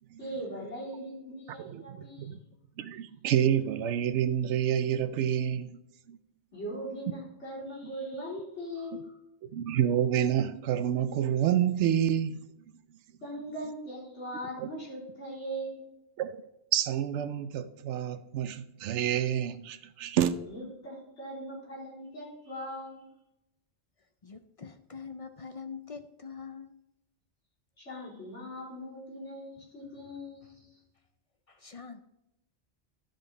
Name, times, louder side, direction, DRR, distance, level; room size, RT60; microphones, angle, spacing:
voice 1, 0.2-2.4 6.5-9.1 13.2-15.8 20.5-23.1 27.8-30.8, equal, 90° left, 4.0 m, -40 dB
voice 2, 1.6-2.4 2.8-5.8 6.1-6.2 9.4-12.4 14.6-14.7 16.2-16.4 16.7-20.3, right 10 dB, 90° right, 0.9 m, -28 dB
voice 3, 24.2-26.7 31.5-32.0, left 5 dB, 45° left, 0.5 m, -44 dB
12.0 x 5.3 x 4.0 m
omnidirectional pair, 1.2 m